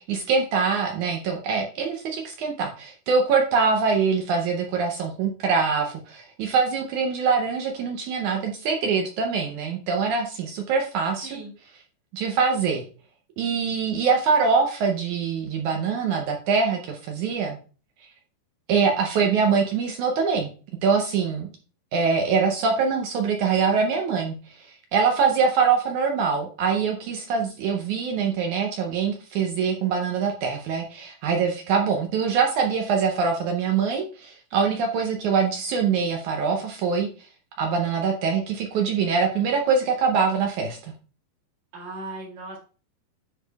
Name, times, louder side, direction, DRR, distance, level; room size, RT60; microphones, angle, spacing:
voice 1, 0.1-11.4 12.1-12.8 13.4-17.6 18.7-20.5 20.8-21.5 21.9-37.1 37.6-40.9, right 5 dB, 75° right, 3 dB, 1.9 m, -24 dB
voice 2, 11.2-11.5 41.7-42.6, right 2 dB, 50° right, -1 dB, 2.9 m, -37 dB
10.0 x 4.8 x 2.3 m, 0.37 s
omnidirectional pair, 4.3 m